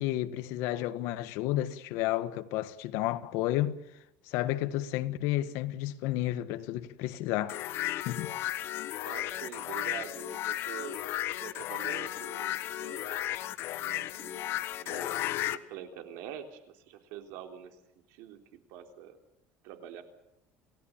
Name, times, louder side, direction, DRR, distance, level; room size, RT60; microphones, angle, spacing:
voice 1, 0.0-3.8 4.3-7.6 8.0-8.3, left 14 dB, 75° left, 1.6 m, -31 dB
sound 1, 7.5-15.6, left 14 dB, 55° left, 1.2 m, -34 dB
voice 2, 9.0-11.0 11.4-13.2 13.8-17.8 18.1-18.4 18.7-19.2 19.6-20.0, right 9 dB, 80° right, 3.7 m, -45 dB
28.5 x 17.5 x 7.4 m
cardioid pair, 145°, 5 cm